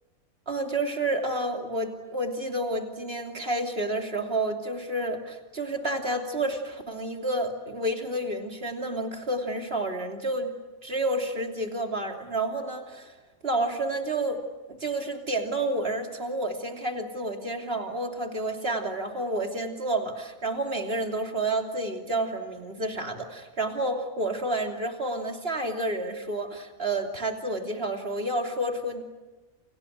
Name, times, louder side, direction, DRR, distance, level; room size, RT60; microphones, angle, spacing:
voice 1, 0.5-10.5 10.8-13.1 13.4-14.4 14.7-29.0, right 1 dB, 45° right, 3 dB, 3.3 m, -30 dB
29.5 x 28.0 x 6.5 m, 1.1 s
omnidirectional pair, 1.5 m